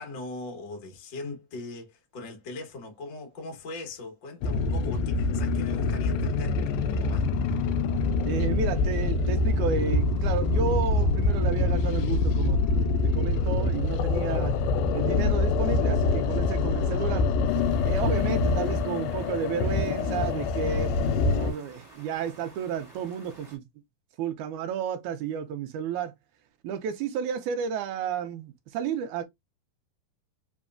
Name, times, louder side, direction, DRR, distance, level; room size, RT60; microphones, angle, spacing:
voice 1, 0.0-6.6 6.9-7.3, left 2 dB, 55° left, 1.3 m, -40 dB
sound 1, 4.4-21.5, left 3 dB, 85° left, 2.4 m, -25 dB
voice 2, 8.2-12.6 13.0-14.5 14.9-17.3 17.8-23.6 24.2-26.1 26.6-29.2, right 7 dB, 85° right, 1.7 m, -32 dB
sound 2, 17.5-23.6, right 2 dB, 15° right, 1.5 m, -51 dB
5.2 x 3.1 x 2.4 m
omnidirectional pair, 4.1 m